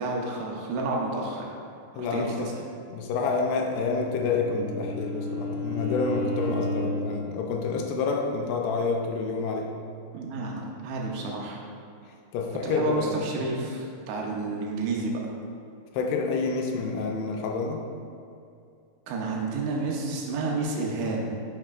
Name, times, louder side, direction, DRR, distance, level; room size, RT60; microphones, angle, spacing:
voice 1, 0.0-1.5 2.0-2.5 10.1-11.6 12.6-15.1 19.1-21.5, right 3 dB, 85° right, -1 dB, 3.1 m, -30 dB
voice 2, 1.9-2.5 2.9-9.7 12.3-13.2 15.9-17.9, left 4 dB, 85° left, 1 dB, 2.6 m, -28 dB
Bowed string instrument, 3.6-7.2, left 1 dB, 70° right, 2.7 m, -32 dB
7.6 x 6.1 x 2.5 m, 2.5 s
omnidirectional pair, 4.8 m